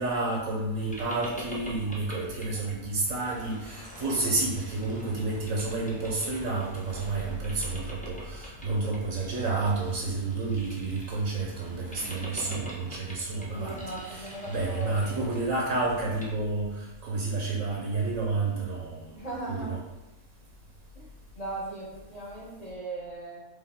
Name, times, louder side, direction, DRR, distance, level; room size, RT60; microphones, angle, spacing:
voice 1, 0.0-13.8 14.1-19.8, right 3 dB, 75° right, -3 dB, 1.2 m, -30 dB
Boat Water vehicle, 0.8-16.3, equal, 10° left, 0.5 m, -45 dB
voice 2, 13.5-15.2 19.1-19.7 20.9-21.0 21.4-23.4, right 2 dB, 30° left, -6 dB, 1.1 m, -38 dB
4.9 x 2.6 x 3.6 m, 0.98 s
omnidirectional pair, 1.5 m